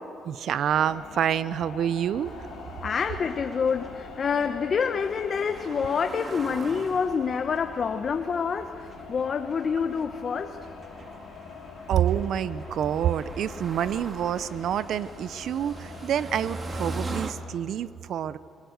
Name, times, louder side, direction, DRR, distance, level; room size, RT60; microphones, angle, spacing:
voice 1, 0.2-2.3 11.9-18.4, right 9 dB, 70° right, 16 dB, 0.7 m, -27 dB
sound 1, 0.7-17.2, left 7 dB, 85° left, 2.3 m, -45 dB
sound 2, 2.2-17.3, right 3 dB, 35° right, 2.1 m, -42 dB
voice 2, 2.8-10.6, left 6 dB, 50° left, 7 dB, 1.1 m, -27 dB
26.5 x 21.0 x 8.1 m, 2.5 s
cardioid pair, 90°, 0 cm